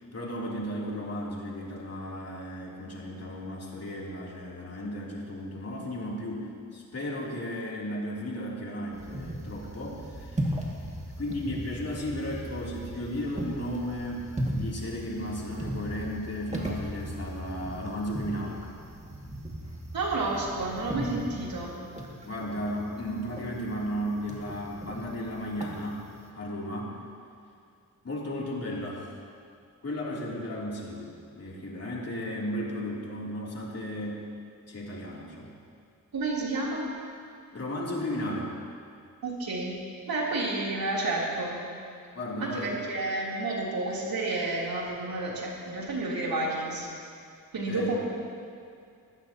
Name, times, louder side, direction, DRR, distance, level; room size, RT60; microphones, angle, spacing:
voice 1, 0.1-6.5 6.7-10.6 11.2-18.6 22.2-26.0 26.3-27.0 28.0-29.1 29.8-34.3 34.7-35.6 37.5-38.5 42.1-42.8 47.7-48.0, equal, 45° left, -4 dB, 3.2 m, -34 dB
sound 1, 8.9-26.3, right 1 dB, 20° right, 2.1 m, -37 dB
voice 2, 19.9-21.8 36.1-36.9 39.2-39.8 40.1-41.6 42.4-46.9 47.5-48.0, right 2 dB, 85° right, -5 dB, 3.4 m, -30 dB
20.5 x 16.0 x 3.0 m, 2.4 s
wide cardioid pair, 100°, 35 cm